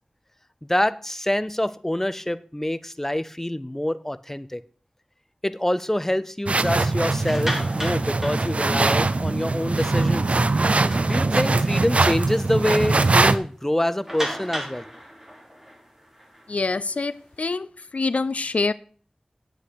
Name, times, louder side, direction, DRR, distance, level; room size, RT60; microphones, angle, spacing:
voice 1, 0.7-4.6 5.4-10.4 11.0-14.8, left 1 dB, 15° left, 15 dB, 0.5 m, -26 dB
sound 1, 6.5-13.4, right 3 dB, 65° right, 0.5 m, -21 dB
sound 2, 7.2-9.2 9.7-9.8 10.2-10.3 10.7-11.7 12.2-12.3 12.7-12.8 14.0-17.4, equal, 20° right, 2.9 m, -35 dB
voice 2, 16.5-18.7, left 3 dB, 75° left, 17 dB, 0.3 m, -26 dB
8.2 x 8.2 x 4.8 m, 0.43 s
wide cardioid pair, 50°, 2 cm